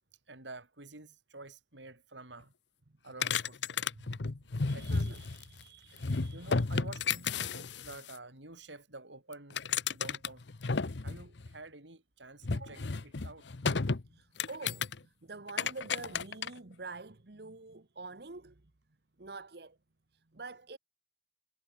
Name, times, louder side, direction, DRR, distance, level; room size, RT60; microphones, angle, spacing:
voice 1, 0.3-2.5 3.0-3.6 4.7-5.2 6.3-9.6 9.9-10.4 11.0-13.5, right 2 dB, 90° right, 6.3 m, -49 dB
sound 1, 3.2-5.6 6.0-8.2 9.3-11.5 12.4-14.0 14.4-15.0 15.5-16.5, left 4 dB, 80° left, 0.9 m, -33 dB
voice 2, 4.6-6.6 12.7-12.8 14.0-18.7 19.2-19.8 20.1-20.8, right 3 dB, 60° right, 1.2 m, -47 dB
head